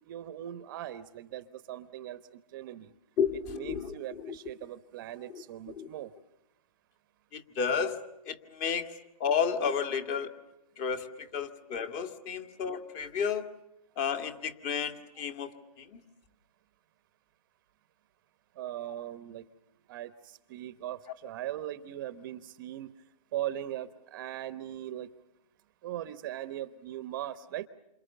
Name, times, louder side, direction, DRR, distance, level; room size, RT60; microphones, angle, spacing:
voice 1, 0.0-2.2 2.5-2.9 3.5-6.1 18.6-19.5 19.9-22.9 23.3-25.1 25.8-27.7, right 12 dB, 30° right, 13 dB, 1.1 m, -39 dB
voice 2, 3.2-4.4 5.3-5.9 7.3-10.3 10.8-13.5 14.0-16.0, left 6 dB, 25° left, 9 dB, 2.1 m, -32 dB
28.5 x 27.5 x 6.8 m, 0.89 s
hypercardioid pair, 160°, 20 cm